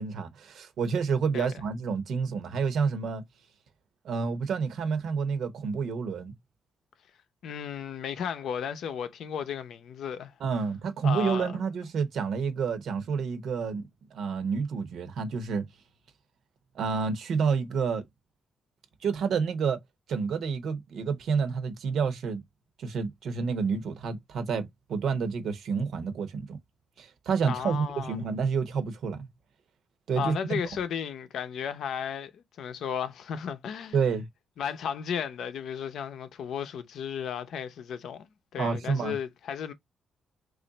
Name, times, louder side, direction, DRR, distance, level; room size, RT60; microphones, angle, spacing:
voice 1, 0.0-3.2 4.0-6.3 10.4-15.6 16.7-18.0 19.0-19.8 20.1-22.4 22.8-26.6 27.0-29.3 30.1-30.6 33.9-34.3 38.6-39.1, right 5 dB, 70° right, 0.8 m, -29 dB
voice 2, 7.4-10.3 11.0-11.6 27.5-28.2 30.2-34.0 34.6-39.7, left 8 dB, 70° left, 0.6 m, -34 dB
3.1 x 2.5 x 3.9 m
cardioid pair, 130°, 0 cm